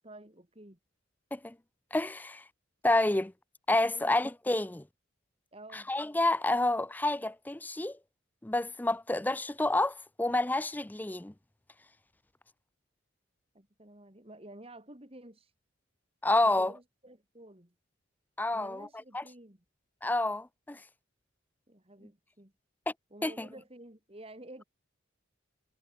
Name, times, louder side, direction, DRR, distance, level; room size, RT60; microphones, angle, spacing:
voice 1, 0.0-0.8 3.9-4.2 5.5-5.9 13.5-15.5 16.4-17.7 18.5-19.6 21.7-22.5 23.1-24.6, right 1 dB, 30° right, 2.8 m, -51 dB
voice 2, 1.9-2.4 2.8-3.3 3.7-4.8 5.7-8.0 8.4-11.3 16.2-16.7 18.4-18.9 19.1-19.2 20.0-20.8 22.9-23.0 23.2-23.5, left 2 dB, 10° left, 0.4 m, -29 dB
head